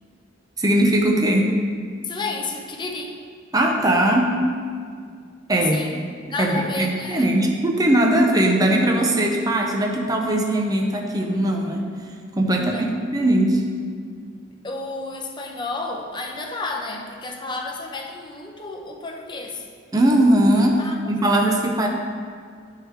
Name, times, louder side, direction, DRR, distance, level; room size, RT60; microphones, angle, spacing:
voice 1, 0.6-1.5 3.5-4.4 5.5-5.8 6.4-11.9 12.4-12.8 13.1-13.6 19.9-21.9, right 1 dB, 20° right, 1 dB, 0.6 m, -19 dB
voice 2, 2.0-3.2 5.5-6.0 6.3-7.3 12.5-13.0 14.5-19.6 20.8-21.0, left 3 dB, 25° left, 1 dB, 0.8 m, -31 dB
11.5 x 4.6 x 3.3 m, 2.1 s
head